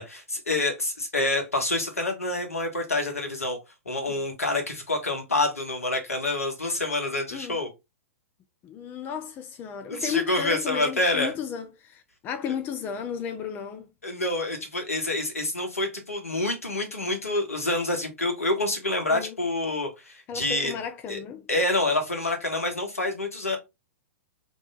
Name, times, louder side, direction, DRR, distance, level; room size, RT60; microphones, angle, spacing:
voice 1, 0.0-3.6 3.8-7.7 9.9-11.3 14.0-20.7 21.1-21.2 21.5-23.6, left 2 dB, 80° left, 1.5 m, -27 dB
voice 2, 8.6-13.9 19.1-19.4 20.3-21.5 22.2-22.3, left 8 dB, 25° left, 0.5 m, -34 dB
3.5 x 3.1 x 4.0 m
figure-of-eight pair, 105°, 8 cm